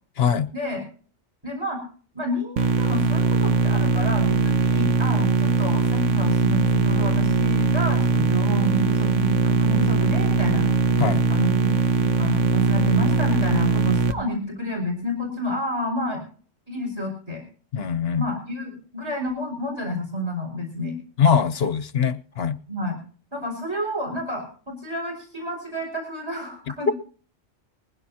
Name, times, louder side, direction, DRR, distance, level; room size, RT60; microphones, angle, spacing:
voice 1, 0.2-0.5 11.0-11.2 17.7-18.3 21.2-22.6 26.9-27.0, left 7 dB, 60° left, 1.0 m, -22 dB
voice 2, 1.4-1.8 2.1-9.1 9.4-10.7 11.3-11.5 12.2-16.2 16.7-17.4 18.1-21.0 22.7-23.0 23.3-26.9, left 1 dB, 20° right, 5.4 m, -30 dB
sound 1, 2.6-14.1, right 5 dB, 85° right, 1.3 m, -21 dB
sound 2, 14.1-15.4, right 4 dB, 45° right, 0.8 m, -35 dB
20.5 x 16.0 x 2.9 m
omnidirectional pair, 1.2 m